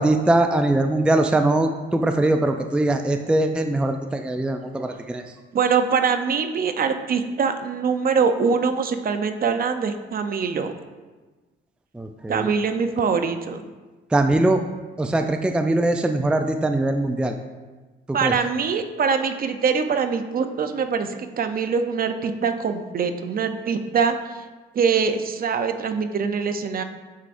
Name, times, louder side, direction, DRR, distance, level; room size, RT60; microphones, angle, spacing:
voice 1, 0.0-5.2 11.9-12.5 14.1-14.6 15.0-17.3 18.2-18.3, right 2 dB, 5° right, 6 dB, 0.4 m, -21 dB
voice 2, 5.5-10.7 12.3-13.6 18.1-24.4 24.7-26.8, right 6 dB, 45° right, 7 dB, 0.6 m, -23 dB
11.0 x 4.8 x 2.6 m, 1.3 s
cardioid pair, 90°, 20 cm